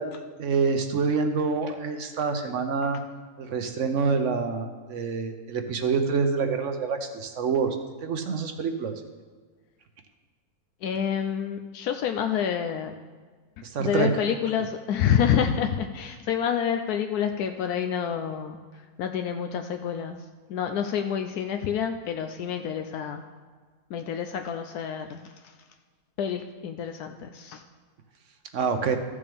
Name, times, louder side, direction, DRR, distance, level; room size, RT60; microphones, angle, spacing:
voice 1, 0.0-3.0 3.4-7.8 8.0-8.9 13.6-14.2 28.5-29.0, right 5 dB, 60° right, 6 dB, 1.0 m, -26 dB
voice 2, 10.8-12.9 13.8-18.6 19.0-23.2 23.9-25.5 26.2-27.6, left 8 dB, 80° left, 6 dB, 1.1 m, -28 dB
14.0 x 6.7 x 3.5 m, 1.5 s
omnidirectional pair, 1.6 m